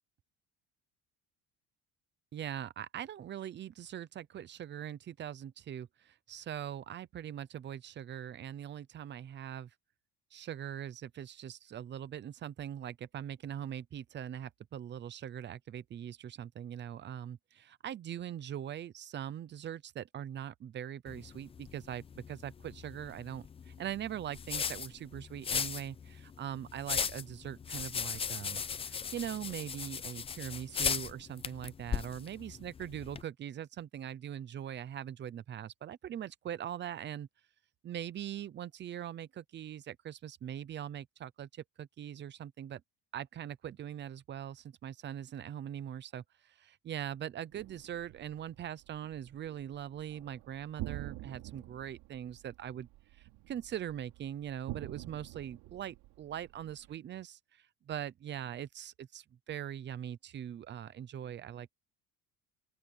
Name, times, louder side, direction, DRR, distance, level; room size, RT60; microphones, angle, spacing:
voice 1, 2.3-9.7 10.3-37.3 37.8-42.8 43.1-52.9 53.2-61.7, right 10 dB, 30° right, 0.7 m, -42 dB
sound 1, 21.1-33.2, left 6 dB, 15° left, 0.4 m, -38 dB
sound 2, 47.5-56.9, right 18 dB, 85° right, 3.5 m, -48 dB
open air
cardioid pair, 170°, 38 cm